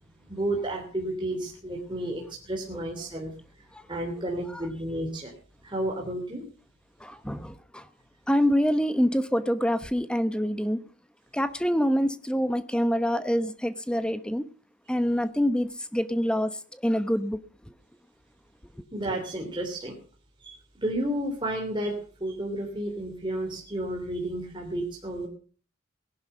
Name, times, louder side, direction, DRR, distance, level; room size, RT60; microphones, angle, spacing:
voice 1, 0.3-3.3 3.9-5.3 5.6-6.4 18.9-19.9 20.4-25.3, right 1 dB, 20° right, 3.0 m, -32 dB
voice 2, 7.0-7.8 8.3-10.8 11.3-14.5 14.9-16.6 16.8-17.4, equal, 5° left, 0.9 m, -26 dB
18.0 x 11.5 x 5.5 m
head